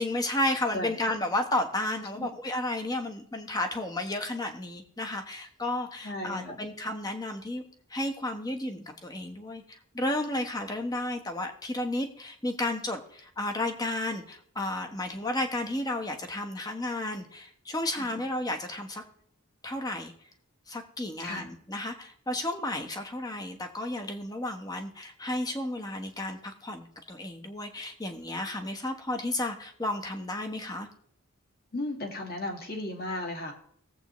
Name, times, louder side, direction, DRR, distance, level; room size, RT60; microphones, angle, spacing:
voice 1, 0.0-7.6 7.9-19.0 19.6-20.1 20.7-30.9, left 1 dB, 15° left, 4 dB, 1.1 m, -32 dB
voice 2, 6.0-6.7 18.0-18.1 21.2-21.4 31.7-33.5, left 1 dB, 45° left, 2 dB, 2.0 m, -35 dB
19.0 x 7.9 x 3.1 m, 0.62 s
head